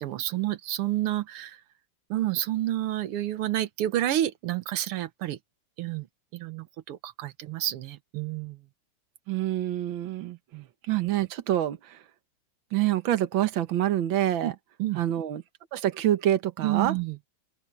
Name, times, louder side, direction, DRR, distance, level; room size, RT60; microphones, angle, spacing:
voice 1, 0.0-1.6 2.1-5.4 5.8-6.1 6.3-8.6 10.5-10.7 14.4-14.5 14.8-15.0 16.6-17.2, right 13 dB, 90° right, 1.9 m, -29 dB
voice 2, 9.3-10.4 10.9-12.0 12.7-14.5 15.0-15.4 15.7-16.9, right 12 dB, 65° right, 1.9 m, -26 dB
open air
omnidirectional pair, 2.4 m